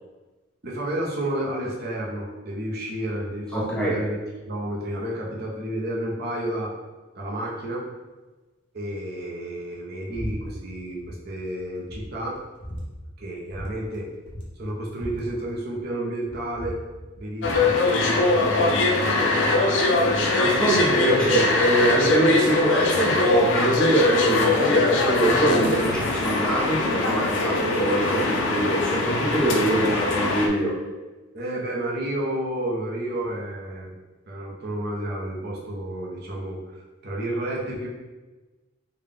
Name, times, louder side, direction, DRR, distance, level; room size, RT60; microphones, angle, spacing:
voice 1, 0.6-4.2 4.5-6.7 7.1-7.8 8.7-12.4 13.2-14.1 14.6-16.8 17.2-20.3 20.9-21.5 31.3-33.9 34.3-36.6 37.0-37.9, right 1 dB, 55° right, -3 dB, 0.7 m, -31 dB
voice 2, 3.5-4.0 19.2-19.4 20.4-30.8, right 1 dB, 5° left, -5 dB, 0.7 m, -23 dB
sound 1, 10.1-10.4 10.6-11.2 11.5-11.6 11.9-12.9 13.5-13.7 13.9-14.0 14.2-15.9 16.2-17.7, equal, 30° left, 0.9 m, -37 dB
sound 2, 17.4-30.5, left 3 dB, 70° left, 0.5 m, -22 dB
3.9 x 2.2 x 3.4 m, 1.2 s
head